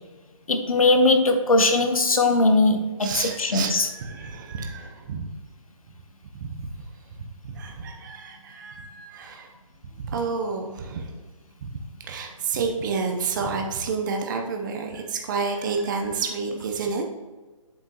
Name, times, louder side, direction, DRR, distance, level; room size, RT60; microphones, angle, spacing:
voice 1, 0.5-3.9, left 2 dB, 85° left, 6 dB, 1.1 m, -20 dB
voice 2, 3.0-5.3 6.4-6.9 7.2-9.5 10.0-11.2 11.6-11.8 12.0-17.0, right 4 dB, 35° right, 3 dB, 0.7 m, -30 dB
7.9 x 5.7 x 3.0 m, 1.3 s
hypercardioid pair, 155°, 18 cm